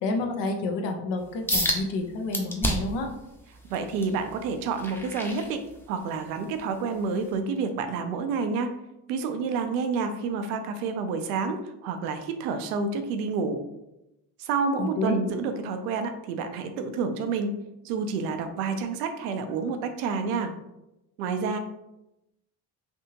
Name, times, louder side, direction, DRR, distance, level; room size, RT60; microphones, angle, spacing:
voice 1, 0.0-3.1 14.8-15.2, left 2 dB, 65° left, 3 dB, 0.8 m, -29 dB
sound 1, 1.5-1.8 2.3-3.0 3.5-6.1 6.6-6.8 7.3-7.4, equal, 5° left, 0.7 m, -29 dB
voice 2, 3.7-5.6 5.9-8.7 9.1-13.6 14.4-17.5 17.8-20.5 21.2-21.6, right 4 dB, 80° right, 7 dB, 0.6 m, -29 dB
3.5 x 2.7 x 2.8 m, 0.90 s
hypercardioid pair, 55°, 47 cm